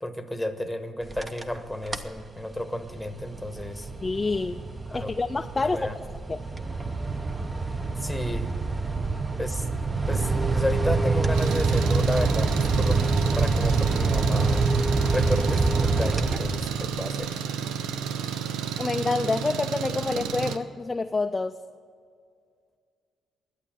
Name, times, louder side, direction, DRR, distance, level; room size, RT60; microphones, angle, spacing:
voice 1, 0.0-3.9 4.9-5.1 5.7-5.9 8.0-8.5 9.4-9.6 10.1-14.6 15.0-17.3, left 1 dB, 5° left, 7 dB, 1.1 m, -32 dB
sound 1, 1.0-1.6 1.9-2.2 2.6-16.9, right 3 dB, 25° right, 0.7 m, -26 dB
voice 2, 4.0-4.6 4.9-5.9 6.3-6.4 18.8-21.6, left 3 dB, 25° left, 7 dB, 0.4 m, -27 dB
Engine, 11.3-20.6, right 7 dB, 90° right, 0.6 m, -32 dB
11.5 x 8.2 x 8.8 m, 2.1 s
cardioid pair, 90°, 0 cm